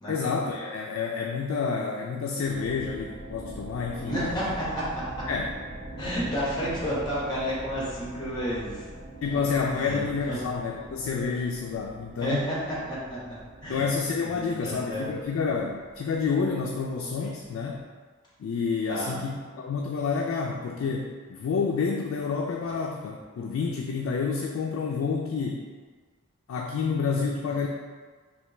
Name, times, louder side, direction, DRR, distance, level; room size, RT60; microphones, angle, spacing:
voice 1, 0.1-4.5 5.3-5.5 9.2-12.5 13.7-17.8 18.4-25.6 26.5-27.7, left 5 dB, 65° left, 0 dB, 0.3 m, -29 dB
sound 1, 2.4-17.8, right 1 dB, 30° right, 0.9 m, -43 dB
voice 2, 4.1-5.3 6.0-8.9 9.3-9.4 9.7-10.4 12.2-13.8 14.2-15.1 18.9-19.1, equal, 20° left, -7 dB, 1.1 m, -31 dB
3.3 x 2.8 x 3.1 m, 1.5 s
head